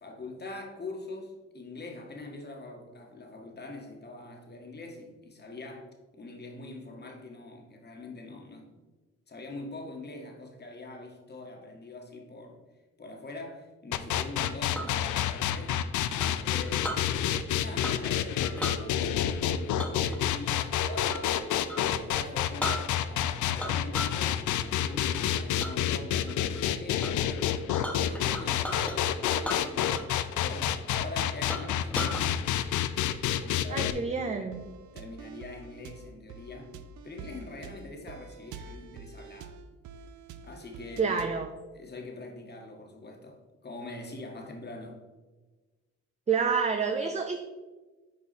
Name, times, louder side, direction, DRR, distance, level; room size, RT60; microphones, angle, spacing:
voice 1, 0.0-8.7 9.3-12.6 13.0-15.8 16.4-17.3 17.6-21.4 21.8-27.3 27.9-32.2 33.4-34.6 34.9-36.7 37.0-39.6 40.4-41.2 41.7-45.0, left 2 dB, 35° left, 1.6 m, -43 dB
sound 1, 13.9-33.9, left 10 dB, 75° left, 0.5 m, -28 dB
Chink clink, 14.4-15.0 16.2-17.0 17.8-18.1 18.4-18.8 19.8-21.3 21.6-21.8 22.3-22.4 22.6-23.2 23.6-24.2 24.6-25.0 25.6-25.7 26.2-26.6 27.0-27.1 27.4-29.0 29.4-30.2 30.4-30.5 31.0-31.1 31.5-32.2, left 1 dB, 5° left, 1.4 m, -37 dB
voice 2, 33.7-34.6 41.0-41.5 46.3-47.4, right 5 dB, 25° right, 0.5 m, -28 dB
sound 2, 34.5-41.5, right 4 dB, 75° right, 0.6 m, -47 dB
8.2 x 4.7 x 4.3 m
cardioid pair, 90°, 30 cm